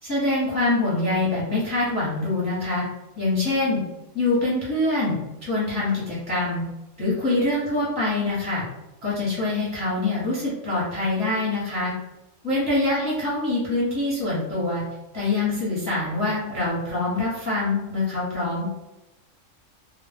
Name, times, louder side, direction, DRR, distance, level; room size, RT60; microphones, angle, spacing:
voice 1, 0.0-2.8 3.2-3.8 4.1-6.6 7.0-8.6 9.0-11.9 12.4-14.8 15.1-18.7, left 2 dB, 15° left, -8 dB, 0.7 m, -24 dB
2.2 x 2.0 x 3.4 m, 0.98 s
omnidirectional pair, 1.4 m